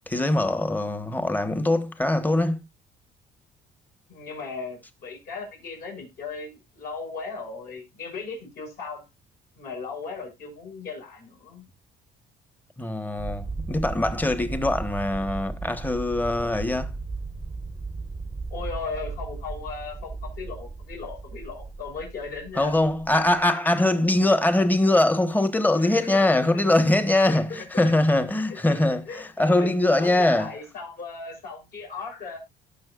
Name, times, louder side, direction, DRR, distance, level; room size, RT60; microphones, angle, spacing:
voice 1, 0.1-2.6 12.8-17.0 22.6-30.5, left 1 dB, 10° left, 1.1 m, -22 dB
voice 2, 4.1-9.0 9.6-11.6 18.5-22.7 25.8-26.6 27.3-27.9 29.1-32.4, left 4 dB, 65° left, 6.3 m, -37 dB
sound 1, 13.2-23.5, right 3 dB, 10° right, 0.8 m, -36 dB
18.0 x 6.1 x 2.4 m
cardioid pair, 110°, 17 cm